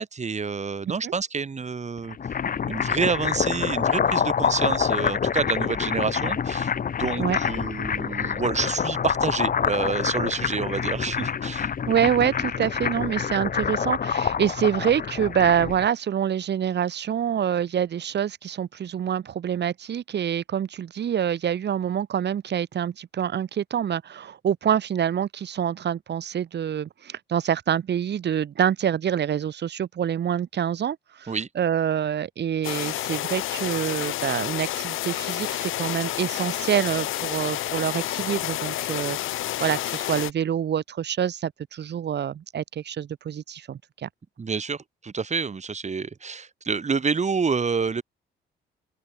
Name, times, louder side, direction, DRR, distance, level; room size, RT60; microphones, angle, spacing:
voice 1, 0.0-2.3 2.7-6.7 7.0-11.7 31.3-31.5 44.4-48.0, right 5 dB, 35° right, 7.8 m, -28 dB
sound 1, 2.0-15.9, left 7 dB, 45° left, 1.8 m, -26 dB
voice 2, 11.9-44.1, right 9 dB, 60° right, 3.9 m, -26 dB
sound 2, 32.6-40.3, left 14 dB, 85° left, 3.5 m, -29 dB
open air
cardioid pair, 90°, 20 cm